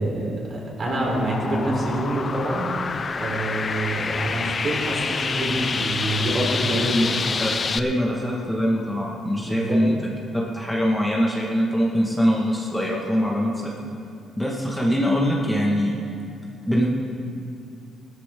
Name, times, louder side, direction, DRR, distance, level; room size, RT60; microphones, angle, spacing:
voice 1, 0.0-2.7 3.2-7.4 9.3-9.8, right 1 dB, 45° right, -3 dB, 4.0 m, -26 dB
sound 1, 0.9-7.8, left 5 dB, 40° left, 0.5 m, -27 dB
voice 2, 7.4-10.0 10.3-13.7 14.4-16.0 16.6-16.9, equal, 5° left, -3 dB, 1.8 m, -23 dB
17.0 x 13.0 x 3.8 m, 2.5 s
cardioid pair, 90°, 0 cm